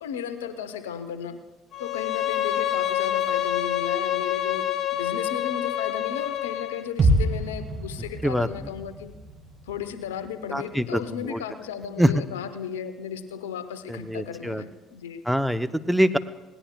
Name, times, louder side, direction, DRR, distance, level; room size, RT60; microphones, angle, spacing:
voice 1, 0.0-1.4 1.8-9.1 9.7-15.2, left 8 dB, 75° left, 11 dB, 0.8 m, -35 dB
Bowed string instrument, 1.7-6.9, left 11 dB, 50° left, 0.6 m, -27 dB
sound 1, 7.0-10.9 11.2-11.3, right 1 dB, 40° right, 2.6 m, -27 dB
voice 2, 10.5-11.0 11.3-11.4 12.0-12.1 13.9-14.6 15.3-16.2, equal, ahead, 10 dB, 0.7 m, -23 dB
20.0 x 18.0 x 2.3 m, 1.1 s
figure-of-eight pair, 55°, 0 cm